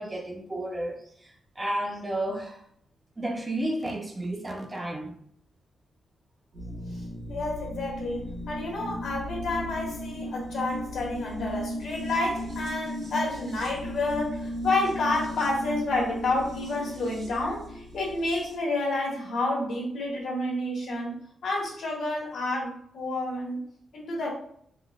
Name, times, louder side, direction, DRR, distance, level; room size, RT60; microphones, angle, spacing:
voice 1, 0.0-2.6 3.2-5.1, right 1 dB, 20° right, 0.5 m, -32 dB
sound 1, 6.5-18.5, equal, 80° right, 1.1 m, -36 dB
voice 2, 7.3-21.1 21.4-23.6 23.9-24.3, left 2 dB, 75° left, 1.1 m, -29 dB
3.7 x 2.1 x 2.3 m
cardioid pair, 130°, 0 cm